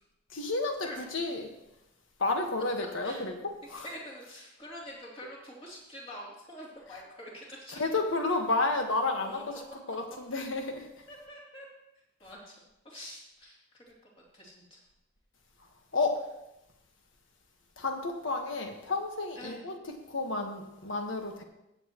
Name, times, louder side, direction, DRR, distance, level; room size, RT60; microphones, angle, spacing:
voice 1, 0.3-1.5 2.2-3.4 3.7-3.9 7.7-9.5 9.9-11.0 15.9-16.3 17.8-21.4, left 3 dB, 70° left, 4 dB, 1.4 m, -31 dB
voice 2, 3.8-8.0 9.2-10.0 11.1-11.7 12.2-13.9 14.3-14.8 19.3-19.6, equal, 25° left, -5 dB, 3.0 m, -46 dB
15.5 x 8.0 x 3.0 m, 0.89 s
head